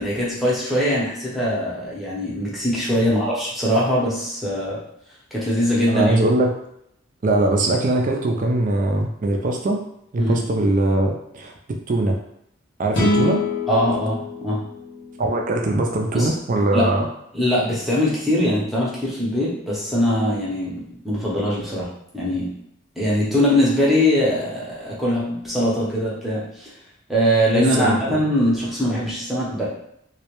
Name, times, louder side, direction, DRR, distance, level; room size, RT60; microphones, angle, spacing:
voice 1, 0.0-4.8 5.3-6.2 10.2-10.5 13.7-14.6 16.1-16.3 16.7-16.9 17.3-21.9 22.1-22.5 23.0-26.7 27.1-29.6, equal, ahead, -7 dB, 0.6 m, -22 dB
voice 2, 5.9-6.5 7.2-9.8 10.1-12.2 12.8-13.4 15.2-17.0 27.5-28.2, right 2 dB, 40° right, 2 dB, 0.4 m, -21 dB
sound 1, 12.9-16.2, left 1 dB, 60° left, 0.5 m, -25 dB
2.3 x 2.1 x 2.9 m, 0.76 s
head